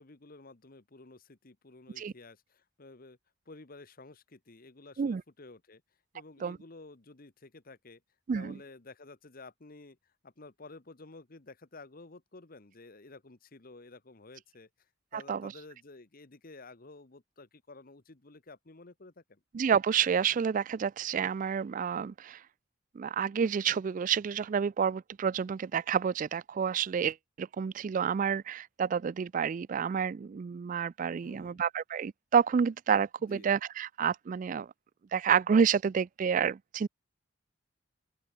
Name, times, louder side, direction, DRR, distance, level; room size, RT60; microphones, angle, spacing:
voice 1, 0.0-3.2 3.5-5.8 6.1-8.0 8.3-14.7 15.1-19.4 31.2-31.6 33.2-33.5, left 3 dB, 45° left, 1.2 m, -52 dB
voice 2, 15.1-15.5 19.5-22.4 23.0-34.7 35.1-36.9, right 7 dB, 40° right, 0.3 m, -29 dB
open air
head